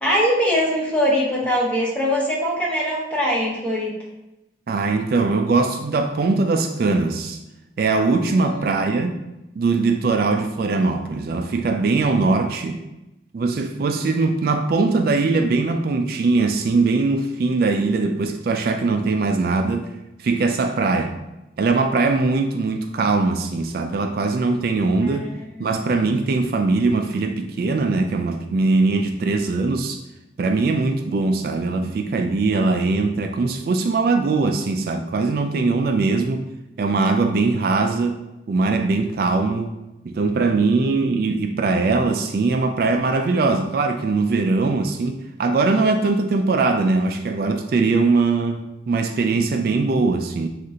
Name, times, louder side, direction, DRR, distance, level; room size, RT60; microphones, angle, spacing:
voice 1, 0.0-3.9 8.3-8.6 25.0-25.5, equal, 5° left, -4 dB, 0.9 m, -22 dB
voice 2, 4.7-7.4 7.8-9.2 9.5-12.8 13.3-19.9 20.2-21.2 21.6-25.3 25.6-30.0 30.4-36.4 36.8-38.2 38.5-39.7 40.0-50.5, right 3 dB, 55° right, 5 dB, 0.3 m, -21 dB
6.4 x 2.5 x 2.8 m, 0.94 s
head